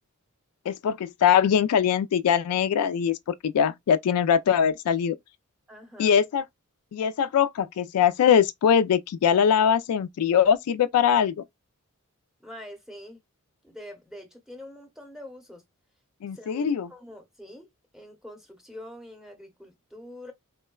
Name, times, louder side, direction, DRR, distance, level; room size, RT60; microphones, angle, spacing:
voice 1, 0.7-3.2 3.4-5.2 6.0-6.4 6.9-11.3 16.2-16.9, left 8 dB, 80° left, 0.3 m, -22 dB
voice 2, 5.7-6.2 12.4-13.2 13.6-15.6 16.3-20.3, left 1 dB, ahead, 0.8 m, -45 dB
3.7 x 2.1 x 2.2 m
head